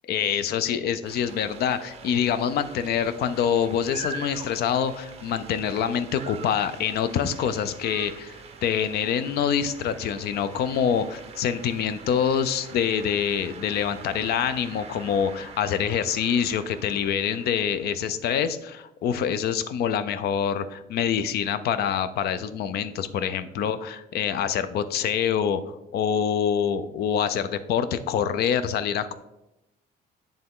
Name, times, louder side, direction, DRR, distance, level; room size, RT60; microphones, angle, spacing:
voice 1, 0.1-8.4 8.6-29.1, left 8 dB, 70° left, 12 dB, 0.5 m, -26 dB
sound 1, 1.0-18.1, right 4 dB, 35° right, 0.8 m, -44 dB
10.0 x 3.4 x 3.7 m, 0.93 s
cardioid pair, 160°, 17 cm